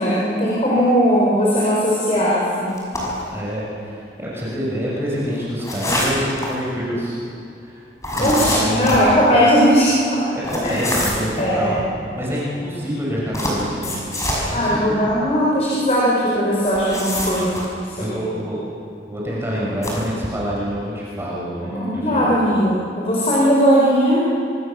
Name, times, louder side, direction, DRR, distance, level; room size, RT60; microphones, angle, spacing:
voice 1, 0.0-2.8 8.2-10.3 10.6-10.8 11.4-11.7 14.5-17.6 17.9-18.1 21.6-24.3, equal, 35° left, -6 dB, 4.7 m, -18 dB
sound 1, 2.8-3.3 5.6-6.5 8.0-9.1 10.4-11.3 13.3-14.5 16.6-17.7 19.7-20.0, left 1 dB, 15° left, 6.0 m, -24 dB
voice 2, 3.3-7.2 7.6-7.8 8.1-9.1 10.5-14.0 14.4-15.1 18.0-18.6 19.1-22.3, equal, 15° right, -6 dB, 6.1 m, -26 dB
26.0 x 24.5 x 7.0 m, 2.6 s
head